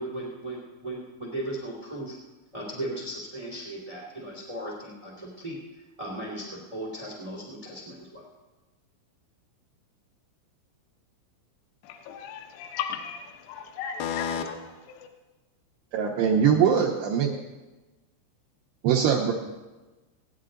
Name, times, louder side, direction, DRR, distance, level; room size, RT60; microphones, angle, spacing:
voice 1, 0.0-2.2 2.5-5.6 6.0-8.3, right 1 dB, 35° right, 0.5 m, -37 dB
voice 2, 11.8-15.1, left 7 dB, 75° left, 2.6 m, -34 dB
voice 3, 15.9-17.4 18.8-19.3, right 7 dB, 80° right, 2.5 m, -22 dB
19.0 x 9.6 x 3.8 m
omnidirectional pair, 5.8 m